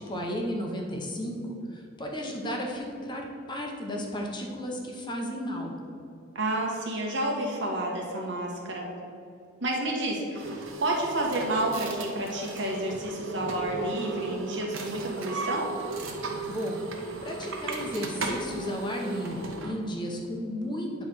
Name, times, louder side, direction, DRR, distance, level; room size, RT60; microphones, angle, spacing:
voice 1, 0.0-1.4 1.7-5.7 16.5-16.8 17.2-20.9, equal, 25° left, 0 dB, 0.9 m, -33 dB
voice 2, 6.3-8.9 9.6-15.7, right 1 dB, 60° right, -1 dB, 1.4 m, -30 dB
sound 1, 10.3-19.8, right 3 dB, 85° right, 1.0 m, -35 dB
9.3 x 3.3 x 6.1 m, 2.5 s
head